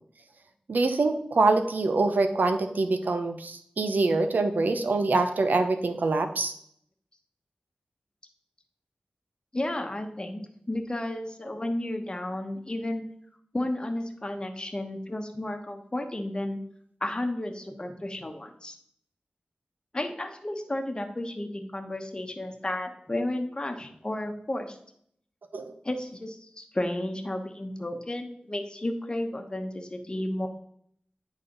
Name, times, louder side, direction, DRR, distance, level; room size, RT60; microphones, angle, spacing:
voice 1, 0.7-6.5 25.5-25.7, right 3 dB, 75° right, 8 dB, 0.7 m, -25 dB
voice 2, 9.5-10.4 10.7-13.0 13.5-16.6 17.0-18.7 19.9-24.8 25.8-30.5, left 1 dB, 30° left, 4 dB, 1.0 m, -32 dB
9.4 x 4.1 x 3.9 m, 0.67 s
wide cardioid pair, 60°, 3 cm